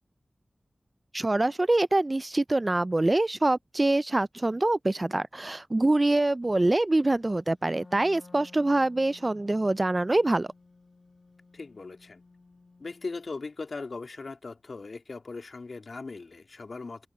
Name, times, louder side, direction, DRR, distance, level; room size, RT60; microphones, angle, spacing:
voice 1, 1.1-10.5, right 2 dB, 35° right, 0.3 m, -25 dB
Wind instrument woodwind instrument, 7.6-13.3, left 3 dB, 50° left, 2.9 m, -55 dB
voice 2, 11.5-12.2 12.8-17.1, left 3 dB, 75° left, 3.4 m, -39 dB
open air
cardioid pair, 45°, 0 cm